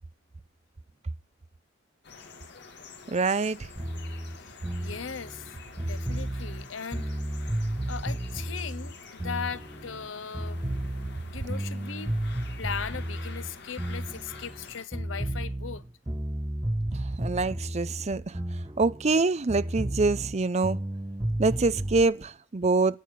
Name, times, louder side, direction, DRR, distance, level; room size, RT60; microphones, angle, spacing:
sound 1, 2.0-14.8, left 4 dB, 60° left, 2.0 m, -48 dB
voice 1, 3.1-3.6 17.2-18.2 18.8-20.8 21.4-23.0, right 3 dB, 35° right, 0.5 m, -25 dB
sound 2, 3.8-10.1 10.3-14.6 14.9-19.2 19.5-22.0, right 1 dB, 20° right, 1.0 m, -33 dB
voice 2, 4.4-7.1 7.9-10.6 11.2-12.1 12.6-15.8, left 6 dB, 80° left, 0.8 m, -38 dB
11.5 x 8.4 x 5.2 m
head